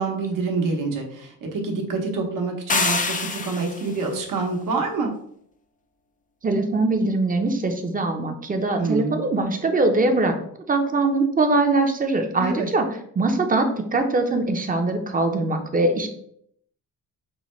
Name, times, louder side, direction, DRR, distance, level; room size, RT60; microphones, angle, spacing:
voice 1, 0.0-5.1 8.8-9.2 12.4-12.7, right 4 dB, 70° right, 1 dB, 1.1 m, -26 dB
sound 1, 2.7-4.0, left 4 dB, 25° left, 0.4 m, -25 dB
voice 2, 6.4-10.3 10.7-12.9 13.1-16.1, right 2 dB, 25° right, 5 dB, 0.7 m, -22 dB
5.6 x 2.2 x 3.1 m, 0.67 s
cardioid pair, 85°, 33 cm